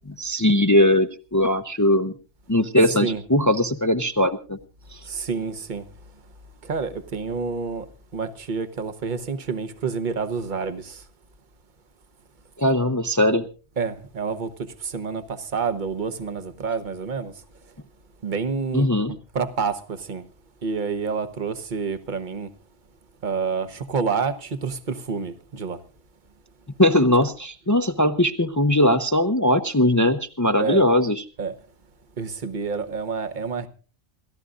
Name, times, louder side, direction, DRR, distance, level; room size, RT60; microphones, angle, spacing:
voice 1, 0.1-2.1 2.5-4.6 12.6-13.4 18.7-19.1 26.8-31.2, left 1 dB, 20° left, 0.6 m, -20 dB
voice 2, 2.8-3.2 5.0-5.8 6.6-7.9 8.1-11.0 13.8-17.3 18.2-20.2 20.6-22.5 23.2-25.8 30.6-30.9 31.4-31.5 32.2-33.7, right 5 dB, 45° right, 1.2 m, -28 dB
28.5 x 14.0 x 2.5 m
omnidirectional pair, 1.1 m